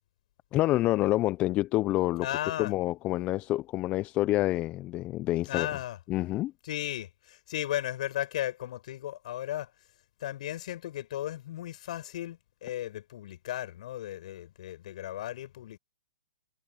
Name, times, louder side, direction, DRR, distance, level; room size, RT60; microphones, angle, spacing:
voice 1, 0.5-2.3 2.6-5.7 6.1-6.5, left 16 dB, 25° left, 0.7 m, -27 dB
voice 2, 2.2-2.7 5.4-6.0 6.6-9.7 10.2-15.8, left 13 dB, 55° left, 7.0 m, -35 dB
hypercardioid pair, 125°, 5 cm